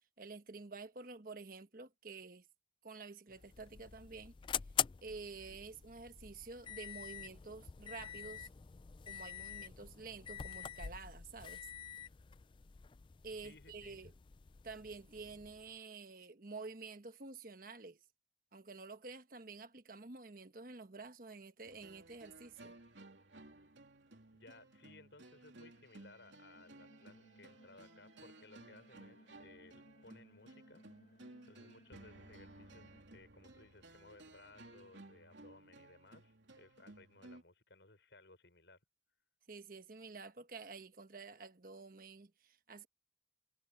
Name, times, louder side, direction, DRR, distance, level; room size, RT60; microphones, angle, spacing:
voice 1, 0.2-2.5 2.8-4.3 5.0-8.5 9.0-11.7 13.2-14.1 14.6-18.0 18.5-22.8 39.5-42.9, right 4 dB, 50° right, 1.2 m, -50 dB
sound 1, 3.3-15.7, left 9 dB, 25° left, 0.3 m, -45 dB
voice 2, 13.4-14.1 24.3-30.8 31.4-38.8, left 2 dB, 75° left, 5.6 m, -61 dB
sound 2, 21.6-37.4, right 2 dB, 90° right, 3.1 m, -58 dB
sound 3, 26.5-33.0, equal, 50° left, 4.6 m, -64 dB
head